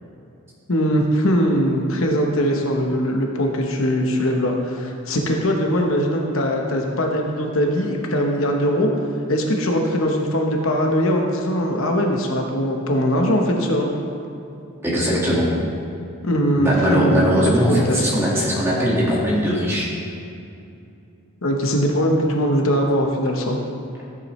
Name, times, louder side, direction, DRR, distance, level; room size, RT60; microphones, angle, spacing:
voice 1, 0.7-8.9 9.3-13.9 16.2-17.2 17.6-18.3 21.4-23.6, equal, 65° left, 1 dB, 1.0 m, -21 dB
voice 2, 14.8-15.5 16.6-19.9, equal, 10° right, -6 dB, 1.9 m, -20 dB
13.5 x 8.3 x 3.2 m, 2.6 s
head